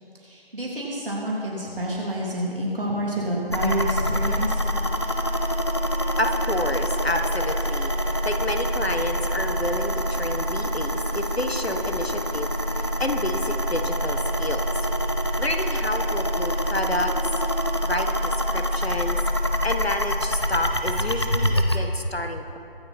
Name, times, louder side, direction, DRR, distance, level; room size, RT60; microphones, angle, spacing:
voice 1, 0.2-4.6 4.9-5.2, right 1 dB, 65° right, -4 dB, 3.3 m, -28 dB
sound 1, 3.5-21.8, equal, 25° left, 0.5 m, -25 dB
voice 2, 6.2-14.7 15.4-17.1 17.8-19.2 19.6-22.6, left 1 dB, 90° left, 6 dB, 1.5 m, -29 dB
23.0 x 8.1 x 4.5 m, 2.7 s
figure-of-eight pair, 160°, 30 cm